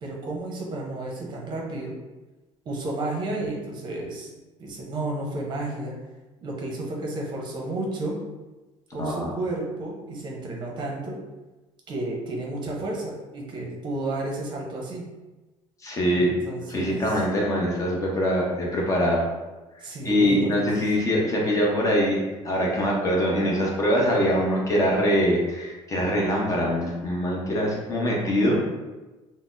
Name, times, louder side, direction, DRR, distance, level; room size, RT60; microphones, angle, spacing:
voice 1, 0.0-2.0 2.6-4.3 4.6-6.0 6.4-8.2 8.9-11.2 11.9-15.1 16.1-17.2 19.8-20.9, right 2 dB, 40° right, -1 dB, 0.7 m, -32 dB
voice 2, 15.8-16.3 16.7-19.2 20.0-22.2 22.4-28.7, equal, 25° left, -3 dB, 0.7 m, -23 dB
4.0 x 2.0 x 2.5 m, 1.1 s
cardioid pair, 135°, 12 cm